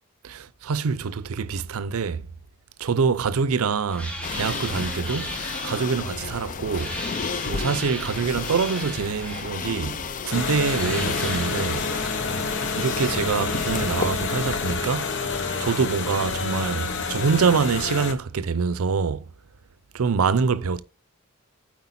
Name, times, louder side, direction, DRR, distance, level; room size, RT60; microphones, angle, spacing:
voice 1, 0.2-2.2 2.8-5.4 5.6-7.0 7.5-10.0 10.2-11.9 12.7-15.1 15.6-19.2 19.9-20.8, right 5 dB, 75° right, 0.5 m, -25 dB
sound 1, 3.9-12.1, equal, 5° left, 1.1 m, -37 dB
sound 2, 4.2-14.7, left 5 dB, 35° left, 0.4 m, -33 dB
sound 3, 10.3-18.1, left 4 dB, 55° left, 0.9 m, -28 dB
8.2 x 4.6 x 4.1 m
head